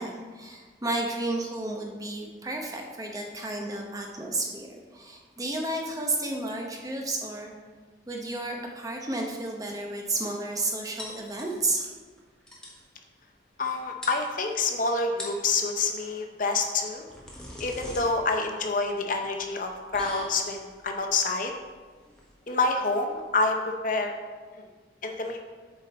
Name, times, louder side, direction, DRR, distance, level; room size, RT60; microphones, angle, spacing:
voice 1, 0.0-7.5 8.1-11.9, right 2 dB, 20° right, 1 dB, 0.9 m, -32 dB
sound 1, 11.0-11.9 12.2-12.3 12.5-12.8 13.7-13.8 14.0-14.7 15.1-15.5 16.7-23.3, left 1 dB, 5° left, 1.1 m, -44 dB
voice 2, 13.6-17.0 17.6-21.5 22.5-23.6 23.8-24.1 25.0-25.4, left 3 dB, 45° left, 4 dB, 0.7 m, -27 dB
8.0 x 5.2 x 4.2 m, 1.5 s
head